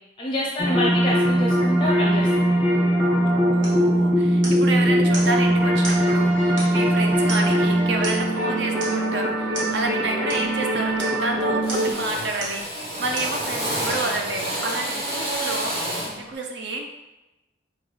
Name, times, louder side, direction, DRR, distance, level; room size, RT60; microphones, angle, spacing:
voice 1, 0.2-2.6 9.7-9.9 16.0-16.2, left 1 dB, 25° left, -3 dB, 0.5 m, -28 dB
sound 1, 0.6-11.9, equal, 10° right, 0.7 m, -21 dB
voice 2, 3.5-16.9, right 2 dB, 65° right, 3 dB, 0.5 m, -30 dB
sound 2, 3.6-3.8 4.4-4.7 5.1-5.4 5.8-6.0 6.6-6.9 7.3-7.6 8.0-8.4 8.8-9.0 9.5-9.7 10.3-10.5 11.0-11.2 11.7-12.0 12.4-12.7 13.2-13.4 13.9-14.1 14.7-14.8, right 2 dB, 85° right, 1.4 m, -34 dB
Drill, 9.3-9.5 9.9-10.5 10.7-11.3 11.6-16.2, right 1 dB, 30° right, 1.1 m, -30 dB
5.4 x 2.3 x 3.2 m, 1.0 s
head